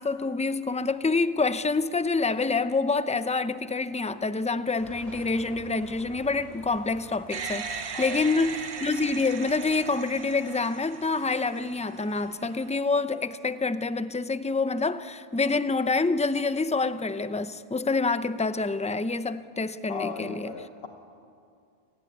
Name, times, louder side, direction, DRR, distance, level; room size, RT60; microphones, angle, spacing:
voice 1, 0.0-20.5, left 3 dB, 10° left, 0.5 m, -27 dB
sound 1, 4.8-9.7, equal, 40° right, 4.7 m, -49 dB
sound 2, 7.3-12.8, right 6 dB, 85° right, 1.4 m, -39 dB
voice 2, 7.9-8.4 19.9-20.9, left 5 dB, 70° left, 1.5 m, -37 dB
29.5 x 17.5 x 9.8 m
omnidirectional pair, 1.1 m